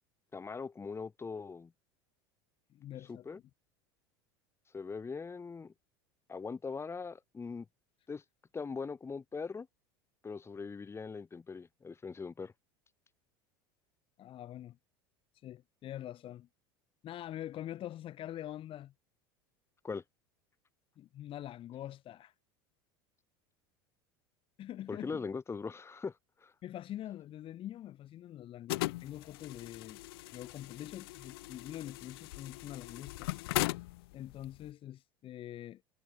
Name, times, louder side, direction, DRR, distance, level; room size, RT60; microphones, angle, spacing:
voice 1, 0.3-1.7 3.1-3.4 4.7-5.7 6.3-7.6 8.1-8.2 8.5-9.7 10.2-12.5 19.8-20.0 24.9-26.1 26.4-26.5, left 5 dB, 20° left, 3.5 m, -41 dB
voice 2, 2.7-3.3 14.2-14.8 15.4-16.5 17.0-18.9 21.0-22.3 24.6-25.2 26.6-30.0 30.3-33.3 34.1-35.8, left 12 dB, 45° left, 3.3 m, -44 dB
sound 1, 28.7-34.7, left 20 dB, 75° left, 2.1 m, -39 dB
supercardioid pair, 95°, 12 cm